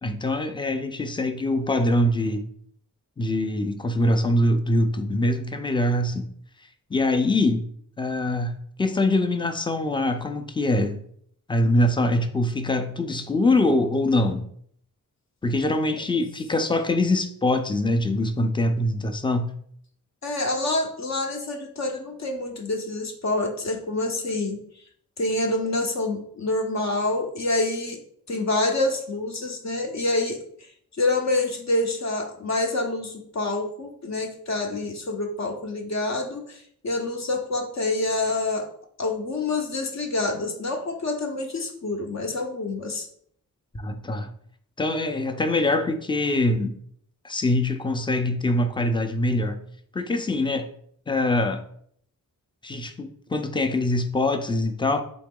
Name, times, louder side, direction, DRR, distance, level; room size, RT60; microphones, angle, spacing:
voice 1, 0.0-2.5 3.2-6.3 6.9-7.7 8.0-11.0 11.5-14.5 15.4-19.5 43.7-44.3 44.8-46.8 47.2-49.6 49.9-50.7 51.1-51.6 52.6-55.0, left 1 dB, 15° left, 0.4 m, -23 dB
voice 2, 20.2-24.6 25.2-28.0 28.3-30.4 31.0-38.7 39.0-43.1, left 2 dB, 50° left, 0.6 m, -27 dB
3.8 x 3.0 x 3.6 m
wide cardioid pair, 100°, 35 cm